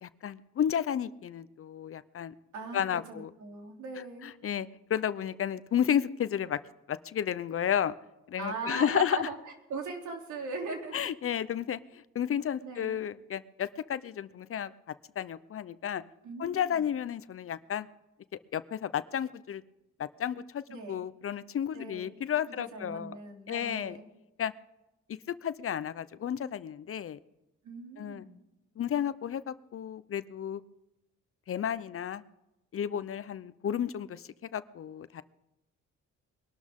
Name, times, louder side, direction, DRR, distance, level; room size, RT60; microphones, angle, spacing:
voice 1, 0.0-2.3 2.7-3.3 4.2-6.6 6.9-7.9 8.3-9.3 10.9-16.0 16.4-17.9 18.5-19.6 20.0-23.2 23.5-24.0 24.4-24.5 25.3-27.2 28.0-28.2 28.8-30.6 31.5-32.2 32.7-35.2, left 9 dB, 45° left, 15 dB, 0.7 m, -32 dB
voice 2, 2.5-4.3 8.4-9.4 9.7-11.1 12.6-13.0 16.2-16.8 20.7-21.0 21.7-22.2 22.5-24.1 27.6-28.4, right 3 dB, 75° right, 2 dB, 3.3 m, -39 dB
22.0 x 12.5 x 3.7 m, 0.93 s
cardioid pair, 90°, 30 cm